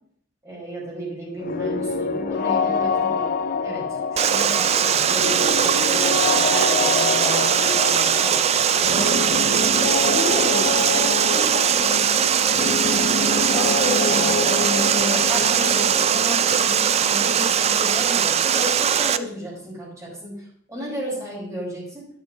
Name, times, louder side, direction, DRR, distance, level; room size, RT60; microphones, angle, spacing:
voice 1, 0.4-3.3 3.6-3.9 4.1-8.4 8.8-9.6 10.0-12.8 13.2-20.3 20.7-22.1, equal, 15° right, -5 dB, 4.8 m, -32 dB
sound 1, 1.4-19.0, left 4 dB, 45° left, 0.5 m, -27 dB
Water, 4.2-19.2, right 8 dB, 30° right, 0.3 m, -20 dB
10.0 x 9.7 x 2.9 m, 0.63 s
head